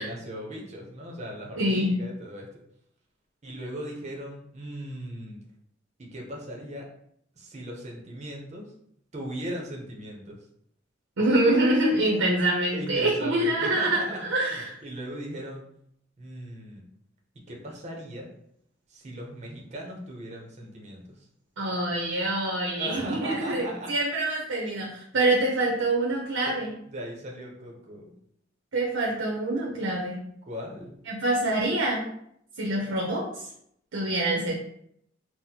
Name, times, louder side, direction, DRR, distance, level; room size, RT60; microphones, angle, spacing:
voice 1, 0.0-2.5 3.4-5.4 6.0-6.9 7.4-8.7 9.1-10.4 12.7-14.2 14.5-15.6 16.2-16.9 17.5-18.3 18.9-21.3 22.8-23.9 25.3-25.4 26.5-26.6 26.9-28.1 30.5-30.9, equal, 35° right, 0 dB, 0.7 m, -38 dB
voice 2, 1.6-1.9 11.2-14.7 21.6-26.7 28.7-30.2 31.1-32.1 32.6-33.5 33.9-34.5, right 1 dB, 85° right, -2 dB, 0.6 m, -25 dB
4.2 x 2.0 x 2.8 m, 0.71 s
head